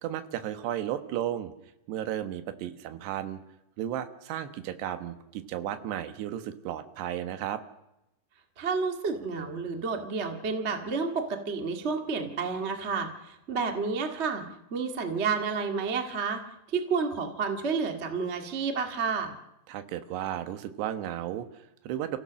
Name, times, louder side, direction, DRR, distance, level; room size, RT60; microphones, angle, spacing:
voice 1, 0.0-1.5 1.9-3.4 3.8-7.6 19.7-22.2, right 11 dB, 75° right, 10 dB, 3.4 m, -34 dB
voice 2, 8.6-14.4 14.7-16.4 16.7-19.3, right 5 dB, 45° right, 5 dB, 0.8 m, -30 dB
29.5 x 16.0 x 6.3 m, 0.91 s
omnidirectional pair, 4.9 m